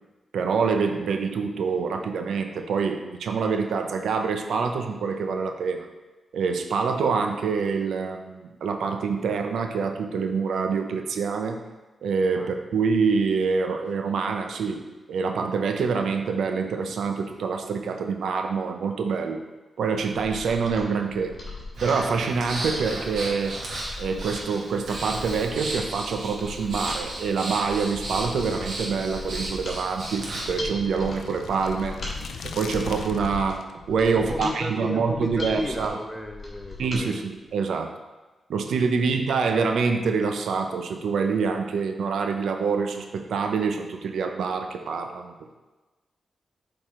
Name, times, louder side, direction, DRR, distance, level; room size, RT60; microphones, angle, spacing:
voice 1, 0.3-5.9 6.3-11.6 12.0-19.4 19.8-21.4 21.8-23.6 24.0-32.0 32.4-36.0 36.8-37.9 38.5-45.5, right 5 dB, 90° right, 5 dB, 0.7 m, -26 dB
Mechanisms, 20.1-37.0 37.4-37.5, left 2 dB, 50° left, 2.3 m, -40 dB
Breathing, 21.7-30.6, right 1 dB, 75° right, 2.1 m, -35 dB
sound 1, 28.0-33.7, left 5 dB, 85° left, 0.5 m, -39 dB
voice 2, 34.1-37.3 38.7-39.2, left 1 dB, 10° left, 4 dB, 0.6 m, -34 dB
8.5 x 4.8 x 3.7 m, 1.2 s
wide cardioid pair, 115°, 0 cm